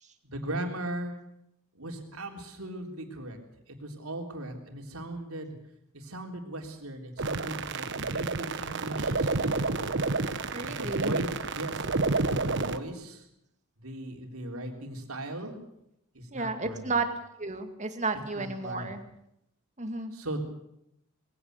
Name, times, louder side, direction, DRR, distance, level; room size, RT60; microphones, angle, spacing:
voice 1, 0.2-1.2 1.8-3.4 3.7-5.5 5.9-9.8 10.6-11.3 11.5-11.9 12.2-13.3 13.8-15.6 16.1-16.9 18.4-18.9 20.1-20.4, right 1 dB, 90° right, 3 dB, 3.6 m, -38 dB
sound 1, 7.2-12.8, right 3 dB, 60° right, 1.2 m, -30 dB
voice 2, 10.5-11.1 16.3-17.1 17.4-19.0 19.8-20.1, right 3 dB, 35° right, 7 dB, 2.1 m, -32 dB
21.0 x 15.5 x 8.1 m, 0.80 s
head